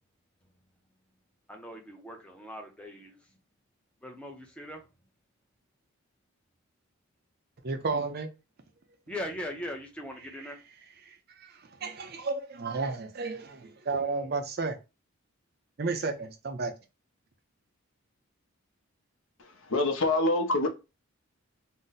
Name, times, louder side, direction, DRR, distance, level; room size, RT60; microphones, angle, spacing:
voice 1, 1.5-3.2 4.0-4.8 9.1-10.6, left 1 dB, 5° left, 0.5 m, -40 dB
voice 2, 7.6-8.3 10.3-10.5 11.0-14.8 15.8-16.7, right 4 dB, 45° right, 0.5 m, -33 dB
voice 3, 19.4-20.7, left 2 dB, 60° left, 0.6 m, -26 dB
2.6 x 2.0 x 3.9 m
head